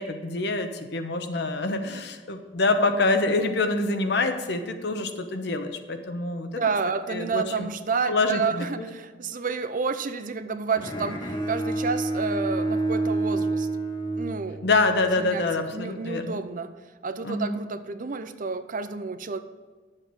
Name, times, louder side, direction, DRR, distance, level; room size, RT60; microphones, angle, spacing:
voice 1, 0.0-6.6 7.1-7.7 8.1-8.9 14.6-16.4 17.2-17.6, left 3 dB, 65° left, 7 dB, 1.0 m, -26 dB
voice 2, 6.6-13.7 14.2-14.7 15.2-16.7 17.0-19.4, right 5 dB, 50° right, 11 dB, 0.6 m, -30 dB
Bowed string instrument, 10.8-15.0, right 2 dB, 25° left, 1.6 m, -28 dB
10.5 x 7.7 x 4.7 m, 1.4 s
head